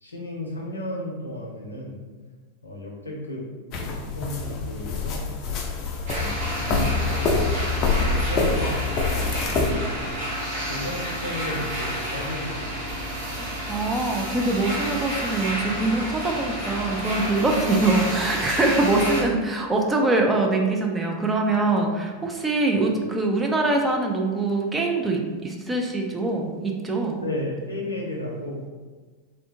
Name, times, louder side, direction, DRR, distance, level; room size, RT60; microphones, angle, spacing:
voice 1, 0.0-2.0 2.6-3.5 3.8-5.2 6.2-13.0 22.7-22.8 27.2-28.7, left 1 dB, 80° left, -1 dB, 0.7 m, -34 dB
sound 1, 3.7-9.7, left 4 dB, 35° left, 0.5 m, -26 dB
sound 2, 6.1-19.2, equal, 60° right, 1.4 m, -30 dB
voice 2, 13.4-27.2, right 2 dB, 15° right, 1 dB, 0.5 m, -23 dB
3.4 x 2.5 x 3.4 m, 1.4 s
figure-of-eight pair, 90°, 0 cm